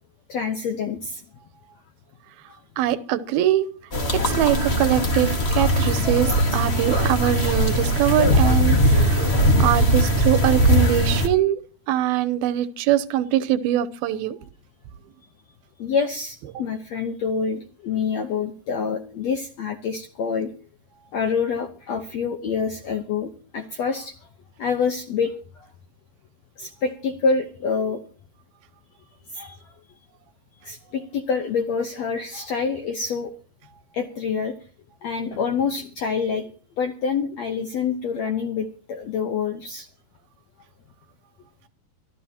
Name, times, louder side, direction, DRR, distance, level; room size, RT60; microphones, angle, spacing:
voice 1, 0.3-1.2 15.8-20.5 21.1-24.1 24.6-25.7 26.6-28.0 29.3-29.6 30.6-33.3 33.9-34.5 35.0-36.5 36.8-39.9, left 5 dB, 75° left, 6 dB, 1.6 m, -26 dB
voice 2, 2.8-3.7 4.1-11.6 11.9-14.4, right 12 dB, 80° right, 14 dB, 2.6 m, -23 dB
sound 1, 3.9-11.3, equal, 55° left, 0.7 m, -20 dB
24.0 x 13.0 x 2.9 m, 0.39 s
omnidirectional pair, 4.4 m